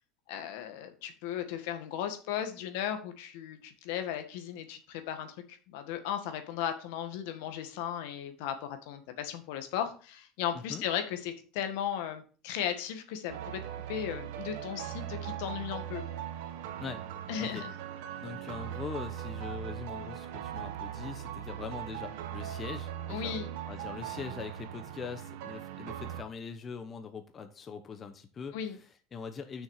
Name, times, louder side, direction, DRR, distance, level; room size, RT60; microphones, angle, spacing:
voice 1, 0.3-5.4 5.7-13.6 13.9-16.0 17.3-17.7 23.1-23.5 28.5-28.8, left 9 dB, 80° left, 7 dB, 1.7 m, -36 dB
sound 1, 13.3-26.2, right 10 dB, 80° right, 1.2 m, -40 dB
voice 2, 18.2-23.4 23.7-29.6, left 5 dB, 30° left, 7 dB, 1.0 m, -42 dB
6.4 x 6.4 x 6.6 m, 0.38 s
supercardioid pair, 125°, 0 cm